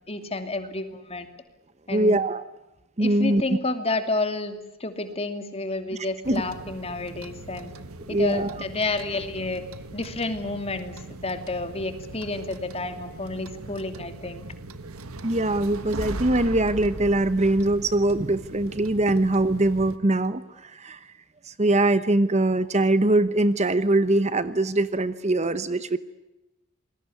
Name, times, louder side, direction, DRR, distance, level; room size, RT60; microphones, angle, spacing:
voice 1, 0.1-1.3 1.9-2.2 3.0-7.7 8.1-9.6 9.9-11.0 11.2-14.4, left 2 dB, 30° left, 8 dB, 2.6 m, -30 dB
voice 2, 1.9-2.4 3.0-3.4 6.3-6.4 8.1-8.6 15.2-21.1 21.4-26.0, right 2 dB, 30° right, 14 dB, 1.0 m, -22 dB
sound 1, 6.2-20.0, right 2 dB, 90° right, 1.6 m, -39 dB
28.0 x 21.0 x 9.7 m, 0.96 s
head